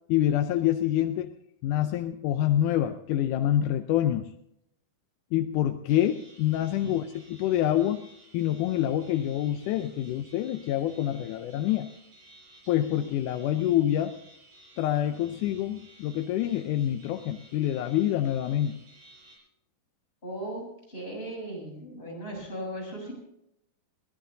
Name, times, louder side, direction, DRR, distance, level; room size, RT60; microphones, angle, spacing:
voice 1, 0.1-1.3 1.6-4.3 5.3-7.0 7.3-8.0 8.3-11.9 12.7-14.2 14.8-18.8, left 12 dB, 75° left, 7 dB, 2.0 m, -26 dB
sound 1, 5.9-19.4, right 1 dB, 85° right, 9.1 m, -55 dB
voice 2, 20.2-23.1, right 1 dB, 15° left, -2 dB, 7.5 m, -37 dB
22.5 x 18.0 x 2.8 m, 0.78 s
omnidirectional pair, 3.9 m